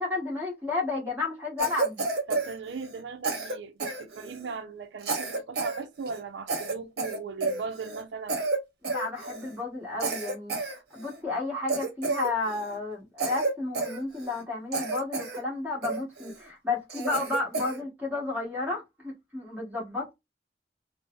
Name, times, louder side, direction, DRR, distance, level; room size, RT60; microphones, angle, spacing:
voice 1, 0.0-2.0 8.8-10.6 10.9-20.1, left 3 dB, 10° right, 1.3 m, -32 dB
Cough, 1.6-3.0 3.2-4.5 5.0-5.8 6.1-6.2 6.5-8.0 8.3-8.6 8.8-9.5 10.0-11.2 11.7-12.8 13.2-14.4 14.7-15.4 15.8-16.4 16.9-17.8, right 3 dB, 60° right, 0.8 m, -31 dB
voice 2, 2.3-8.4 8.9-9.0, right 5 dB, 85° right, 0.4 m, -38 dB
3.8 x 2.0 x 2.4 m
head